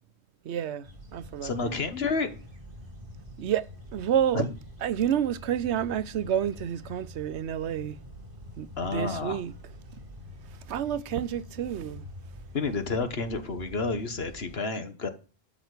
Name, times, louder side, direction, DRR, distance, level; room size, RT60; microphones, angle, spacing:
voice 1, 0.4-1.8 3.4-4.5 4.8-8.0 8.6-9.5 10.7-12.0, right 9 dB, 90° right, 1.0 m, -29 dB
sound 1, 0.8-14.6, left 1 dB, 55° right, 2.6 m, -46 dB
voice 2, 1.4-2.3 4.3-4.5 8.8-9.4 12.5-15.1, left 4 dB, 70° left, 1.6 m, -30 dB
12.5 x 6.0 x 6.6 m
omnidirectional pair, 1.1 m